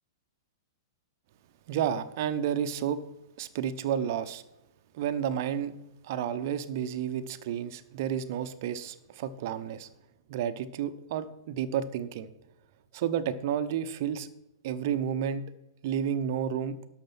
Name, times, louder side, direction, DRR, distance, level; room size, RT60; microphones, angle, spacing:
voice 1, 1.7-3.0 3.4-4.4 4.9-5.7 6.0-9.9 10.3-12.3 12.9-14.3 14.6-15.4 15.8-16.8, right 9 dB, 50° right, 11 dB, 0.8 m, -31 dB
11.5 x 6.6 x 6.1 m, 0.93 s
figure-of-eight pair, 105°, 2 cm